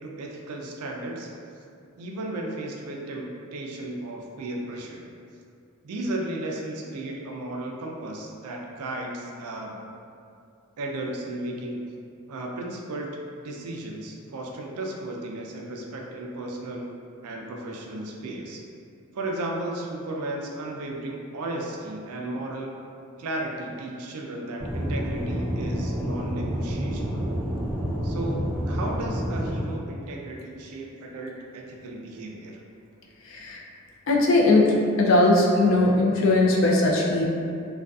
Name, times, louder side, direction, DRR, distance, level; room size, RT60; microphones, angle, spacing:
voice 1, 0.0-1.3 2.0-5.0 5.8-9.7 10.8-11.8 12.3-13.1 13.4-16.8 17.2-18.6 19.1-22.8 23.2-27.3 28.0-32.6, right 1 dB, 90° right, 0 dB, 0.4 m, -34 dB
Aircraft / Engine, 24.6-29.6, equal, 10° right, 0.4 m, -28 dB
voice 2, 33.2-33.6 34.1-37.2, left 2 dB, 60° left, -2 dB, 0.4 m, -19 dB
2.5 x 2.3 x 2.3 m, 2.5 s
head